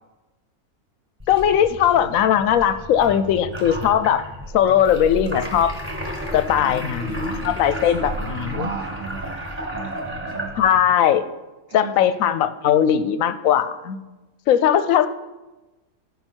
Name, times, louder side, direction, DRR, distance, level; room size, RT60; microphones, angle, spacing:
sound 1, 1.2-10.9, equal, 10° right, 1.3 m, -32 dB
voice 1, 1.3-4.2 4.5-5.7 6.3-8.7 10.6-11.3 11.7-14.0 14.5-15.1, left 9 dB, 70° left, 12 dB, 0.9 m, -19 dB
voice 2, 6.5-7.6 8.0-10.6 11.7-12.1, right 6 dB, 80° right, 2 dB, 1.3 m, -36 dB
13.5 x 5.4 x 4.4 m, 1.1 s
omnidirectional pair, 1.6 m